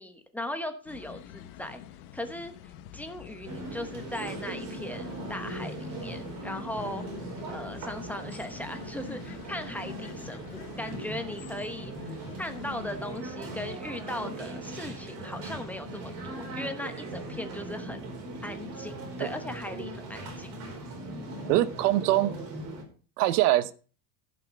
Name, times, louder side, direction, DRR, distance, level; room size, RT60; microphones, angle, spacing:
voice 1, 0.0-1.8 2.1-7.0 7.5-18.0 18.4-20.6, left 1 dB, 5° left, 6 dB, 0.9 m, -38 dB
sound 1, 0.9-13.2, left 11 dB, 65° left, 1.2 m, -48 dB
sound 2, 3.4-22.8, right 1 dB, 55° right, 4.7 m, -39 dB
voice 2, 21.5-22.3 23.2-23.7, right 15 dB, 85° right, 15 dB, 1.0 m, -23 dB
15.5 x 5.9 x 5.2 m, 0.38 s
cardioid pair, 160°, 45 cm